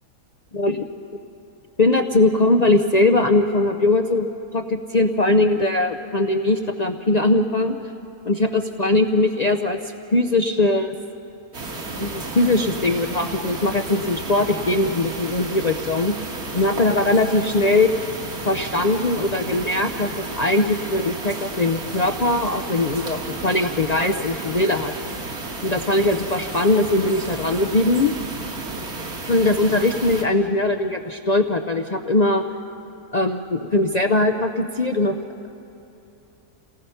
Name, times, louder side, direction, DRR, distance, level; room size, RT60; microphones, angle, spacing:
voice 1, 0.5-0.9 1.8-7.8 8.2-9.8 10.1-10.9 12.0-16.2 16.5-17.9 18.4-24.9 25.6-28.1 29.3-32.4 33.1-35.2, left 2 dB, 55° left, 6 dB, 0.4 m, -20 dB
sound 1, 11.5-30.2, right 2 dB, 80° right, 2.4 m, -32 dB
29.0 x 19.0 x 5.6 m, 2.9 s
omnidirectional pair, 1.5 m